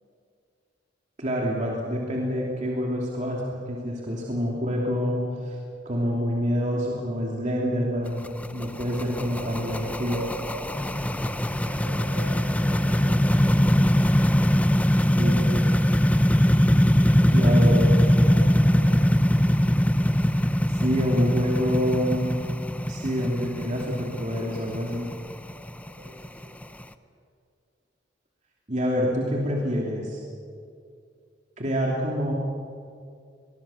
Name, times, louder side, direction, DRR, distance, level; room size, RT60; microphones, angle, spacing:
voice 1, 1.2-5.6 5.8-10.2 15.2-15.6 17.3-17.8 20.7-22.3 22.9-25.1 28.7-30.2 31.6-32.3, equal, 40° right, -2 dB, 2.9 m, -27 dB
sound 1, 8.1-26.8, equal, 10° left, 0.7 m, -22 dB
voice 2, 9.2-14.1 14.9-15.8 17.3-19.1 26.0-26.6, equal, 75° right, -3 dB, 4.8 m, -40 dB
25.0 x 21.0 x 7.2 m, 2.3 s
head